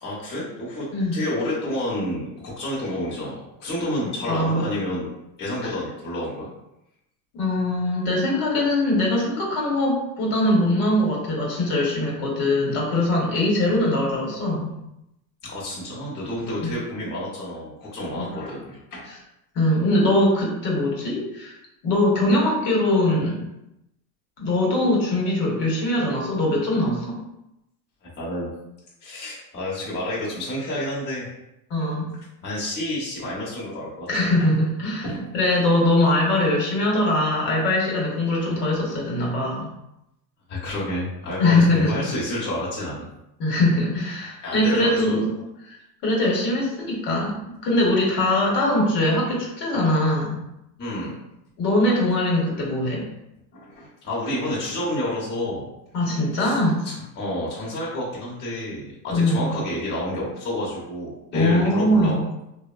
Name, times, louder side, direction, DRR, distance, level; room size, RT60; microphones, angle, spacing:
voice 1, 0.0-6.5 15.4-19.1 28.0-28.5 29.0-31.3 32.4-34.1 35.0-35.3 40.5-43.1 44.4-45.1 50.8-51.2 53.5-55.7 56.4-56.6 56.8-62.2, left 1 dB, 20° left, -7 dB, 0.8 m, -29 dB
voice 2, 4.0-4.6 5.6-5.7 7.3-14.7 16.6-16.7 18.2-18.3 19.5-21.6 21.8-23.4 24.4-27.2 31.7-32.1 34.1-35.1 35.3-39.7 41.4-41.9 43.4-45.3 45.7-45.8 46.0-50.4 51.6-53.1 55.9-56.8 59.1-59.5 61.3-62.3, left 1 dB, 55° left, -2 dB, 1.0 m, -22 dB
2.9 x 2.0 x 2.3 m, 0.86 s
supercardioid pair, 130°, 49 cm